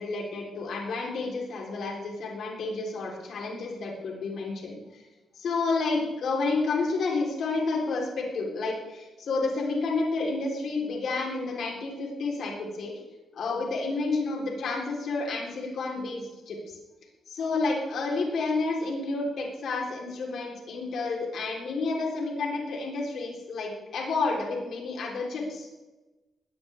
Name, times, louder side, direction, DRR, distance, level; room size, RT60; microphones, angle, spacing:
voice 1, 0.0-5.0 5.4-12.9 13.3-16.8 17.3-25.7, left 3 dB, 65° left, -1 dB, 3.9 m, -30 dB
20.0 x 16.0 x 3.6 m, 1.1 s
wide cardioid pair, 150°, 0 cm